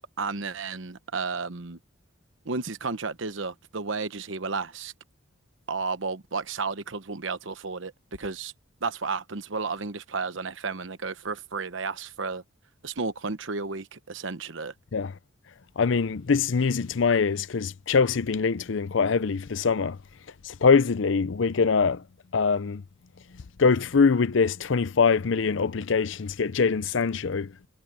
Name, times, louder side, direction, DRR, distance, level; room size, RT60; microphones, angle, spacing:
voice 1, 0.2-1.8 2.4-4.9 5.7-7.9 8.2-8.5 8.8-12.4 12.8-14.7, right 4 dB, 70° right, 1.0 m, -32 dB
voice 2, 15.8-20.0 20.4-22.0 22.3-22.8 23.3-27.5, left 5 dB, 65° left, 0.6 m, -23 dB
head